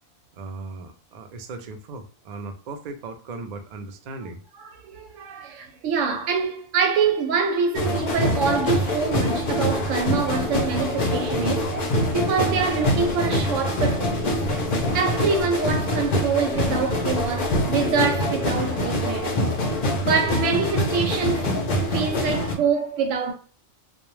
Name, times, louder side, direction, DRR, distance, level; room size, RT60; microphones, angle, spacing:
voice 1, 0.3-4.4, right 3 dB, 75° right, 0.4 m, -37 dB
voice 2, 4.6-11.7 12.1-14.4 14.9-19.4 20.1-21.5 21.9-23.3, right 5 dB, 90° right, 1.0 m, -25 dB
sound 1, 7.7-22.5, left 1 dB, 55° left, 0.4 m, -24 dB
2.2 x 2.0 x 3.0 m
omnidirectional pair, 1.3 m